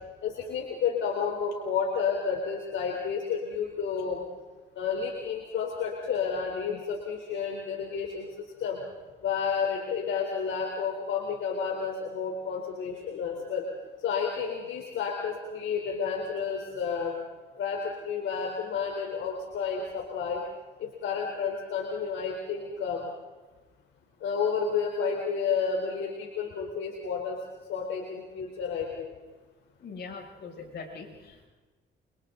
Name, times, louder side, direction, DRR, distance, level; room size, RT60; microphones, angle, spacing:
voice 1, 0.2-4.2 4.8-8.3 8.6-8.8 9.2-13.7 14.0-17.2 17.6-20.4 20.8-23.1 24.2-27.4 27.7-29.1, left 6 dB, 75° left, 0 dB, 3.9 m, -31 dB
voice 2, 29.8-31.5, left 4 dB, 60° left, 0 dB, 6.8 m, -42 dB
29.5 x 25.5 x 4.0 m, 1.2 s
cardioid pair, 90°, 20 cm